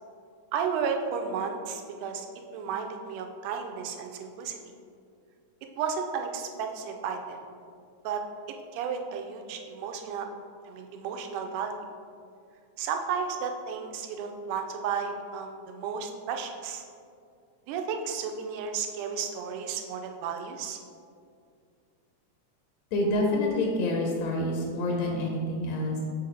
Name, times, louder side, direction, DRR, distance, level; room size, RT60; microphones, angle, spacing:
voice 1, 0.5-2.3 2.5-4.6 5.8-7.4 8.0-8.2 8.7-10.3 10.7-11.8 12.8-16.8 17.7-20.8, right 6 dB, 90° right, 4 dB, 2.1 m, -33 dB
voice 2, 22.9-26.0, left 1 dB, 75° left, -1 dB, 1.7 m, -27 dB
5.8 x 4.2 x 3.9 m, 2.3 s
omnidirectional pair, 3.5 m